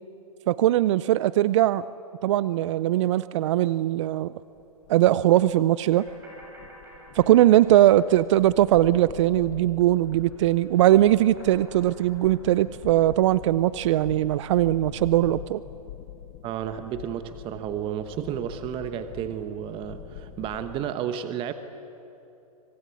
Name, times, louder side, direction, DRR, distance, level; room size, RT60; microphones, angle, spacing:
voice 1, 0.5-1.9 2.2-4.3 4.9-6.1 7.2-15.6, right 13 dB, 50° right, 17 dB, 0.6 m, -20 dB
sound 1, 4.6-20.9, left 13 dB, 40° left, 1.0 m, -45 dB
sound 2, 5.9-9.3 9.6-13.6, right 1 dB, 10° right, 7.1 m, -53 dB
voice 2, 16.4-21.5, right 9 dB, 25° right, 10 dB, 1.2 m, -32 dB
24.5 x 21.5 x 9.5 m, 2.9 s
hypercardioid pair, 125°, 19 cm